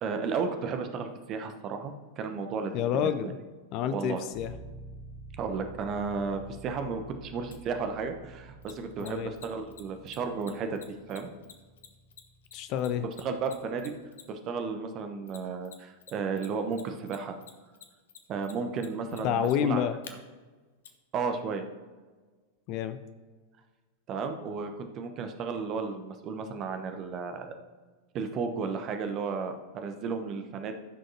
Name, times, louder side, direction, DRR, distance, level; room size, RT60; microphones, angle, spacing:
voice 1, 0.0-2.7 3.0-3.1 3.9-4.2 5.4-10.8 11.1-11.3 13.2-13.9 14.3-17.4 18.3-19.8 21.1-21.6 24.1-27.6 28.1-30.8, right 5 dB, 35° right, 6 dB, 0.9 m, -33 dB
voice 2, 2.7-3.3 3.7-4.5 9.0-9.3 12.5-13.1 19.2-20.0 22.7-23.0, left 9 dB, 40° left, 10 dB, 0.5 m, -28 dB
sound 1, 4.3-14.1, right 2 dB, 80° left, 2.2 m, -50 dB
Mechanisms, 7.5-7.6 8.6-14.5 15.3-16.1 16.4-20.1 20.8-20.9, left 8 dB, 60° left, 0.9 m, -49 dB
15.0 x 6.3 x 2.8 m, 1.3 s
figure-of-eight pair, 90°, 0 cm